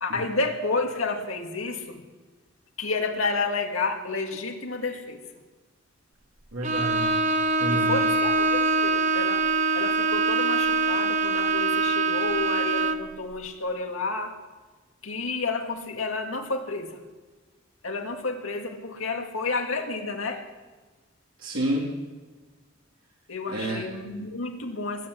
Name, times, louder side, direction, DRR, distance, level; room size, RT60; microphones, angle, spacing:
voice 1, 0.0-2.0 2.8-5.2 7.7-9.4 9.7-14.4 15.0-17.0 17.8-20.4 23.3-25.1, left 3 dB, 80° left, 3 dB, 2.3 m, -30 dB
voice 2, 6.5-7.2 7.6-8.0 21.4-21.9 23.5-23.8, right 1 dB, 80° right, -4 dB, 3.6 m, -29 dB
Bowed string instrument, 6.6-13.1, right 3 dB, 35° right, 0.8 m, -24 dB
21.0 x 8.2 x 8.5 m, 1.3 s
head